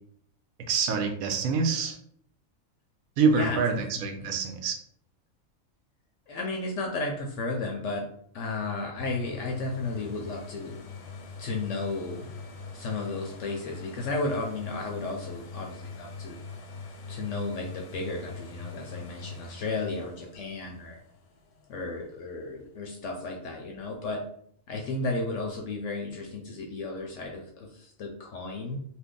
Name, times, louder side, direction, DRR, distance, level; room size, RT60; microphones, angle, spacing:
voice 1, 0.7-2.0 3.2-4.7, right 5 dB, 80° right, 5 dB, 1.0 m, -26 dB
voice 2, 3.3-4.2 6.3-8.1 8.3-10.7 11.4-12.3 12.7-16.4 17.1-21.0 21.7-24.2 24.7-28.8, left 3 dB, 70° left, 1 dB, 0.8 m, -33 dB
sound 1, 9.0-22.6 23.2-23.3, left 4 dB, 90° left, 1.1 m, -43 dB
2.7 x 2.5 x 3.6 m, 0.66 s
omnidirectional pair, 1.5 m